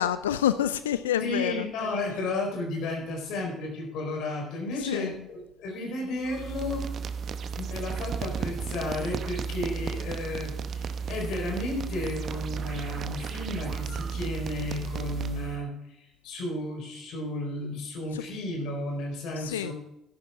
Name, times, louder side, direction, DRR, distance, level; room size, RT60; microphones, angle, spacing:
voice 1, 0.0-1.7 4.8-5.3 18.1-18.2 19.4-19.7, left 10 dB, 80° left, 13 dB, 0.3 m, -28 dB
voice 2, 1.2-6.8 7.5-15.7 16.0-19.7, left 2 dB, 60° left, 2 dB, 4.1 m, -33 dB
sound 1, 6.2-15.6, right 6 dB, 50° right, 0.9 m, -34 dB
13.5 x 11.0 x 3.6 m, 0.89 s
hypercardioid pair, 55°, 0 cm